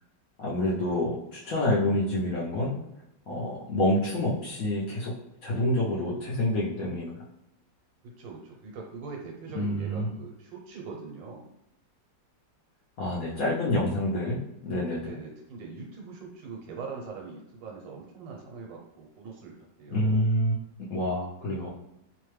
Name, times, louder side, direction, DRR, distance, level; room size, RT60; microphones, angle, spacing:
voice 1, 0.4-2.8 3.3-5.1 5.4-7.1 9.5-10.1 13.0-15.1 19.9-20.5 20.9-21.7, left 1 dB, 65° left, -6 dB, 0.9 m, -27 dB
voice 2, 8.0-11.5 15.0-20.3, right 4 dB, 80° right, 0 dB, 1.5 m, -42 dB
3.2 x 2.1 x 3.1 m, 0.84 s
omnidirectional pair, 2.0 m